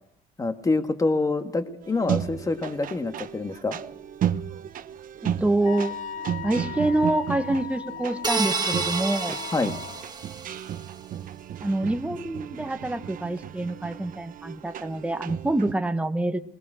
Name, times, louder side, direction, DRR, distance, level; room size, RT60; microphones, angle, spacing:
voice 1, 0.4-3.8 9.5-9.7, left 3 dB, 20° left, 8 dB, 1.8 m, -26 dB
sound 1, 1.8-15.7, right 9 dB, 55° right, 1.0 m, -34 dB
voice 2, 5.2-5.9 6.4-9.4 11.6-16.4, right 2 dB, 5° right, 8 dB, 1.2 m, -26 dB
Wind instrument woodwind instrument, 5.6-10.1, left 8 dB, 45° left, 0.9 m, -38 dB
sound 2, 8.2-10.7, right 4 dB, 25° right, 1.8 m, -29 dB
20.5 x 20.0 x 6.3 m, 0.74 s
cardioid pair, 110°, 17 cm